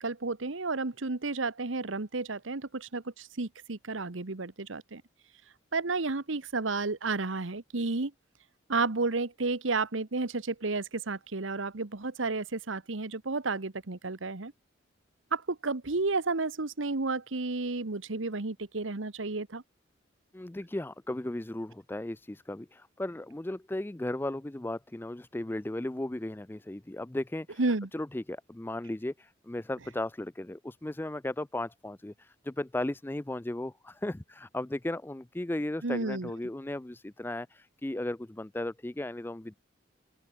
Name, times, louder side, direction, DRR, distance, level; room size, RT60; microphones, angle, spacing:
voice 1, 0.0-5.0 5.7-8.1 8.7-14.5 15.3-19.6 27.6-27.9 35.8-36.3, right 3 dB, 90° right, 1.2 m, -32 dB
voice 2, 20.3-27.6 27.9-39.5, left 1 dB, 10° left, 0.4 m, -36 dB
open air
head